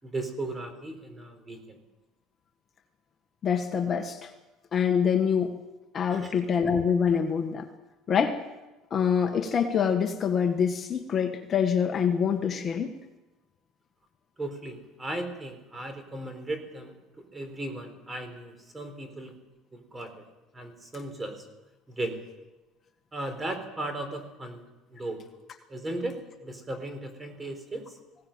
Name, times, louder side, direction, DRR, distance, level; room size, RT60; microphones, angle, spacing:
voice 1, 0.0-1.8 6.1-6.3 14.4-19.4 19.7-20.3 20.5-21.5 21.9-22.2 23.1-24.6 24.9-25.2 25.7-28.0, right 2 dB, 15° right, 8 dB, 3.9 m, -36 dB
voice 2, 3.4-4.3 4.7-5.5 5.9-7.7 8.1-8.4 8.9-13.0, left 7 dB, 30° left, 5 dB, 1.5 m, -25 dB
19.5 x 17.5 x 8.9 m, 1.1 s
cardioid pair, 135°, 0 cm